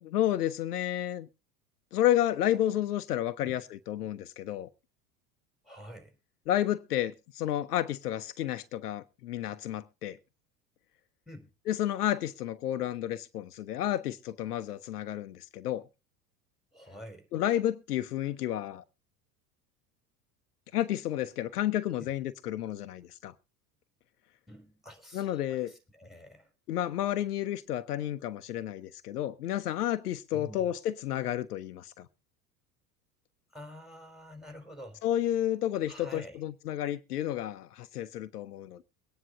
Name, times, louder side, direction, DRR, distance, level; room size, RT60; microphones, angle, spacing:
voice 1, 0.0-1.3 1.9-4.7 6.5-10.2 11.7-15.8 17.3-18.8 20.7-23.3 25.1-25.7 26.7-32.1 35.0-38.8, left 12 dB, 80° left, 0.9 m, -31 dB
voice 2, 5.6-6.2 11.3-11.5 16.7-17.3 22.0-22.1 24.5-26.5 30.3-30.7 33.5-35.0 35.9-36.4, equal, ahead, 4.3 m, -48 dB
23.0 x 9.8 x 2.5 m
hypercardioid pair, 75°, 46 cm